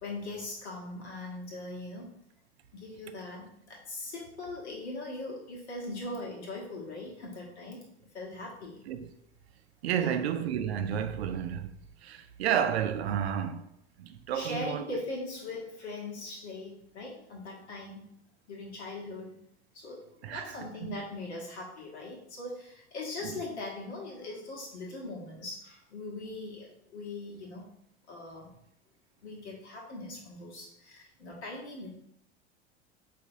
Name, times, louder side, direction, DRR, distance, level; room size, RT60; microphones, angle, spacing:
voice 1, 0.0-2.1 2.7-7.8 8.1-8.8 10.0-10.2 14.3-18.1 18.5-19.3 19.7-27.7 28.1-28.5 29.2-31.9, left 2 dB, 75° left, 1.2 m, -40 dB
voice 2, 9.8-11.7 12.0-13.7 14.0-14.8 20.2-21.0 23.2-23.4, right 9 dB, 70° right, 0.5 m, -31 dB
4.8 x 2.7 x 2.6 m
figure-of-eight pair, 80°, 34 cm